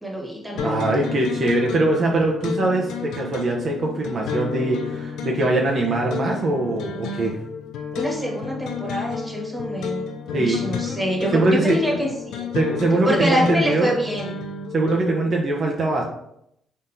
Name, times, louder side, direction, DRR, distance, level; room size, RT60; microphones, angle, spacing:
voice 1, 0.0-0.8 7.9-10.0 10.3-12.5 13.0-14.4, equal, 10° right, -2 dB, 1.4 m, -25 dB
sound 1, 0.6-15.3, left 6 dB, 85° left, 0.5 m, -31 dB
voice 2, 0.6-7.4 10.3-10.6 11.3-11.8 12.5-13.9 14.7-16.0, right 2 dB, 50° right, -1 dB, 0.7 m, -22 dB
4.1 x 3.7 x 2.6 m, 0.76 s
cardioid pair, 90°, 0 cm